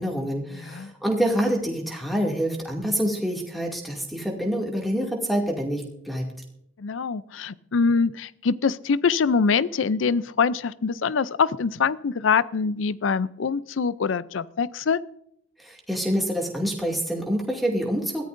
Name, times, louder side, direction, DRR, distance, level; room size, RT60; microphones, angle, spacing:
voice 1, 0.0-6.3 15.6-18.3, equal, ahead, 0 dB, 2.4 m, -26 dB
voice 2, 0.5-0.9 6.8-15.0, left 5 dB, 80° left, 18 dB, 0.5 m, -24 dB
21.5 x 14.5 x 2.6 m, 0.75 s
head